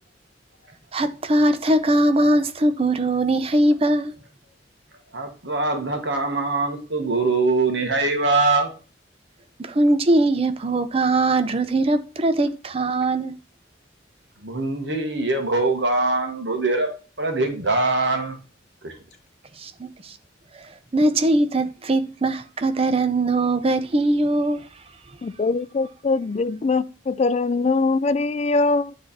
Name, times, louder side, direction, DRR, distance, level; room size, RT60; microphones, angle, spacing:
voice 1, 0.9-4.2 9.6-13.3 19.6-20.2 20.5-20.7 20.9-24.7, right 2 dB, 30° right, 0.6 m, -21 dB
voice 2, 5.1-8.7 14.4-16.9 17.2-18.3 18.8-18.9, right 3 dB, 65° right, 1.5 m, -22 dB
voice 3, 25.2-28.9, left 3 dB, 35° left, 0.3 m, -22 dB
9.4 x 3.3 x 4.2 m
head